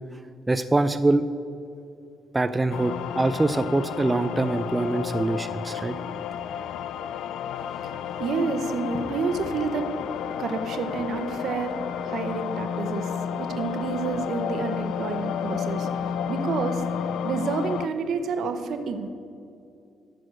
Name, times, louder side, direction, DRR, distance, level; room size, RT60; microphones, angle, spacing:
voice 1, 0.5-1.2 2.3-6.0, right 2 dB, 15° right, 10 dB, 0.4 m, -24 dB
sound 1, 2.7-17.9, left 8 dB, 80° left, 0.3 m, -31 dB
voice 2, 7.5-19.1, right 4 dB, 70° right, 8 dB, 0.8 m, -30 dB
9.3 x 6.2 x 6.3 m, 2.6 s
cardioid pair, 90°, 0 cm